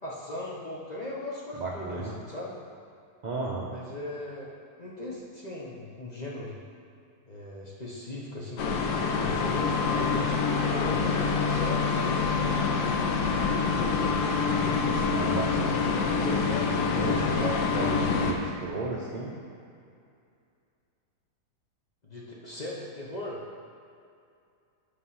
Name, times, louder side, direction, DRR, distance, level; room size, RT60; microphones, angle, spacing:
voice 1, 0.0-2.5 3.7-4.5 4.8-6.6 7.3-10.3 10.6-12.8 13.7-14.1 15.7-17.3 22.0-23.4, left 1 dB, 35° left, -5 dB, 0.7 m, -38 dB
voice 2, 1.6-2.1 3.2-3.7 15.1-15.8 16.2-16.4 16.9-19.3, right 2 dB, 85° right, -5 dB, 0.4 m, -33 dB
sound 1, 8.6-18.3, left 5 dB, 85° left, 1.3 m, -26 dB
8.5 x 3.2 x 5.5 m, 2.5 s
omnidirectional pair, 1.7 m